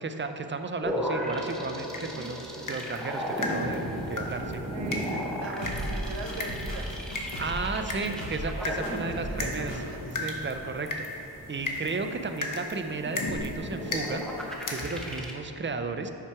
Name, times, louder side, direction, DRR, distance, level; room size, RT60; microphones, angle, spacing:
voice 1, 0.0-4.6 7.4-9.8 10.2-11.1 11.5-14.2 14.7-16.1, right 4 dB, 30° right, 7 dB, 0.4 m, -34 dB
sound 1, 0.8-15.3, equal, ahead, 0.8 m, -36 dB
sound 2, 1.9-15.2, left 2 dB, 45° left, 0.9 m, -37 dB
voice 2, 4.7-7.0 7.8-8.3 8.6-10.0, right 3 dB, 85° right, 5 dB, 0.7 m, -40 dB
sound 3, 5.6-7.7 8.2-8.6 8.8-9.4 9.7-9.8, equal, 80° left, 1.1 m, -35 dB
5.8 x 5.7 x 4.7 m, 2.9 s
wide cardioid pair, 80°, 43 cm